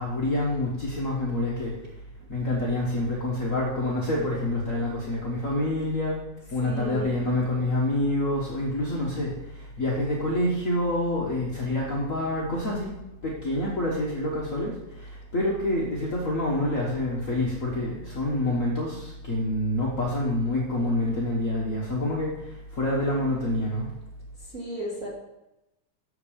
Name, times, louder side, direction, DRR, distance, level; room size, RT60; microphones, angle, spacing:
voice 1, 0.0-1.7 2.3-6.2 6.5-12.9 13.2-23.9, left 1 dB, 50° left, -4 dB, 0.9 m, -27 dB
voice 2, 6.6-7.3 24.5-25.1, right 2 dB, 35° right, -5 dB, 1.5 m, -35 dB
7.3 x 6.8 x 5.2 m, 0.93 s
omnidirectional pair, 3.4 m